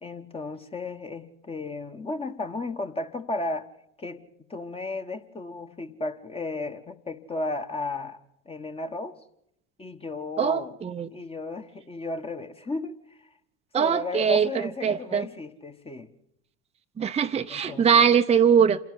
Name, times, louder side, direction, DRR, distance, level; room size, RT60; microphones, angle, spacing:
voice 1, 0.0-3.7 4.0-4.2 4.5-9.1 9.8-10.8 11.1-13.3 13.8-16.1 17.5-18.1, left 3 dB, 15° left, 1.4 m, -34 dB
voice 2, 10.4-11.1 13.7-14.5 14.8-15.2 17.0-18.8, right 7 dB, 15° right, 0.9 m, -21 dB
27.5 x 12.0 x 9.4 m
figure-of-eight pair, 70°, 38 cm